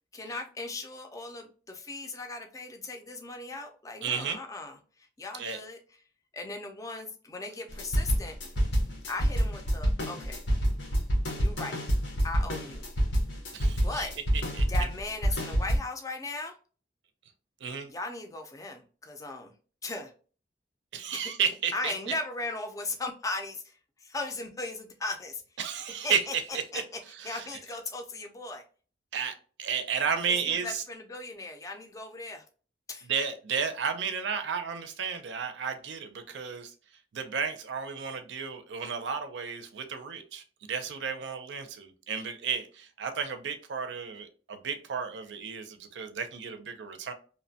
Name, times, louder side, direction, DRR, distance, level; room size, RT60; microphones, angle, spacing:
voice 1, 0.1-5.8 6.3-8.4 9.1-10.4 11.4-11.8 12.2-12.8 13.8-14.1 14.7-16.6 17.9-19.5 19.8-20.1 21.1-21.3 21.7-25.4 26.0-26.3 26.7-28.6 30.3-32.4 32.9-33.1, left 2 dB, 20° left, 4 dB, 0.4 m, -38 dB
voice 2, 4.0-4.4 5.4-5.6 13.5-14.1 14.5-14.6 17.6-17.9 20.9-22.1 25.6-26.2 26.5-26.8 27.2-27.4 29.1-30.8 33.0-36.7 37.1-47.1, right 6 dB, 85° right, 7 dB, 0.5 m, -33 dB
sound 1, 7.7-15.8, equal, 90° left, 0.9 m, -27 dB
2.8 x 2.1 x 2.7 m, 0.38 s
head